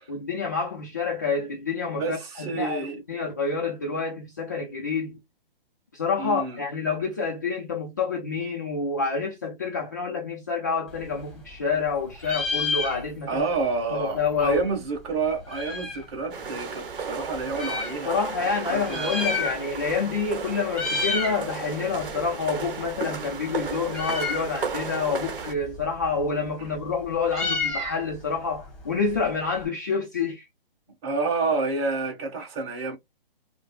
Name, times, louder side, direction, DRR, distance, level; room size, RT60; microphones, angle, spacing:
voice 1, 0.0-5.2 5.9-13.5 13.9-14.7 18.0-30.5, left 5 dB, 20° left, 0.3 m, -28 dB
voice 2, 2.0-3.0 6.2-6.6 13.3-19.3 31.0-33.0, right 4 dB, 30° right, 1.5 m, -29 dB
Meow, 10.9-11.9 12.1-13.4 13.7-13.8 14.0-16.1 16.8-18.0 18.7-19.9 20.2-20.4 20.7-21.4 21.8-29.6, left 3 dB, ahead, 1.0 m, -32 dB
sound 1, 16.3-25.5, right 5 dB, 60° right, 1.2 m, -34 dB
5.0 x 2.0 x 2.3 m
hypercardioid pair, 140°, 30 cm